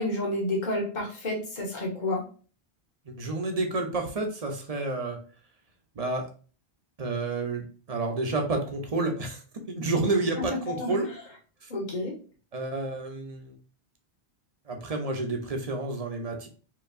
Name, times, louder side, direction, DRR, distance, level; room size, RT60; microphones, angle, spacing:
voice 1, 0.0-2.2 10.5-11.0 11.7-12.2, left 1 dB, 45° left, -2 dB, 1.3 m, -30 dB
voice 2, 3.0-5.2 5.9-6.3 7.0-9.4 9.7-11.1 11.6-11.7 12.5-13.6 14.7-16.5, right 2 dB, 40° right, 4 dB, 0.8 m, -30 dB
4.6 x 2.8 x 2.6 m, 0.38 s
omnidirectional pair, 1.1 m